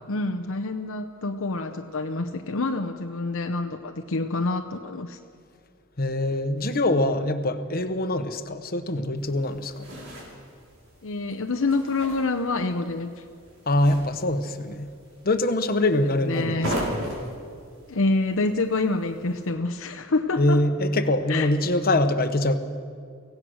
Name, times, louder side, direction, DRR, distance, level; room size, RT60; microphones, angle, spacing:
voice 1, 0.1-5.2 11.0-13.2 16.2-16.7 17.9-20.6 21.3-21.5, left 3 dB, 65° left, 6 dB, 0.8 m, -27 dB
voice 2, 6.0-9.9 13.7-14.9 15.2-16.9 20.4-22.6, left 1 dB, 45° left, 8 dB, 1.1 m, -24 dB
sound 1, 9.2-19.5, equal, 65° right, 5.7 m, -38 dB
24.0 x 17.0 x 6.4 m, 2.2 s
head